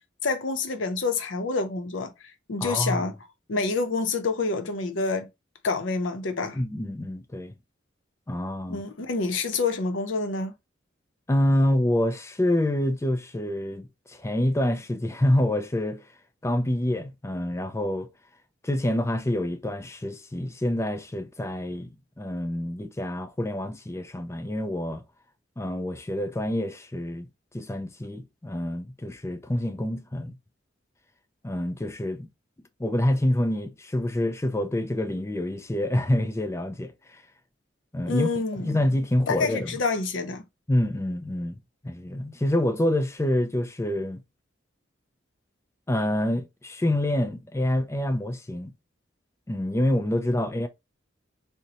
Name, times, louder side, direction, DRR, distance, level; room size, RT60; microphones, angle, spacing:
voice 1, 0.2-2.1 2.5-3.1 3.5-5.3 5.6-6.6 8.7-10.5 38.1-38.7 39.3-40.4, left 3 dB, 80° left, 0.7 m, -27 dB
voice 2, 2.6-3.0 6.5-7.5 8.3-8.8 11.3-16.0 16.4-18.1 18.6-25.0 25.6-27.3 27.5-30.4 31.4-32.3 32.8-37.2 37.9-38.3 38.6-39.7 40.7-41.6 41.8-44.2 45.9-48.7 49.5-50.7, left 1 dB, 15° left, 0.4 m, -27 dB
3.9 x 2.2 x 2.8 m
head